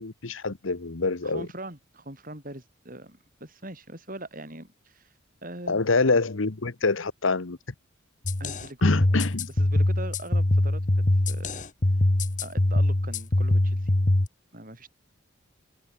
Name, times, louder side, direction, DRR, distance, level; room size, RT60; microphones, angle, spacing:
voice 1, 0.0-1.5 5.7-7.6 8.8-9.5, left 3 dB, 75° left, 1.1 m, -25 dB
voice 2, 1.2-5.1 5.4-5.8 8.4-9.2 9.6-11.6 12.4-13.9 14.5-14.9, right 1 dB, 45° right, 7.8 m, -41 dB
sound 1, 8.2-14.3, left 1 dB, 40° left, 1.2 m, -23 dB
head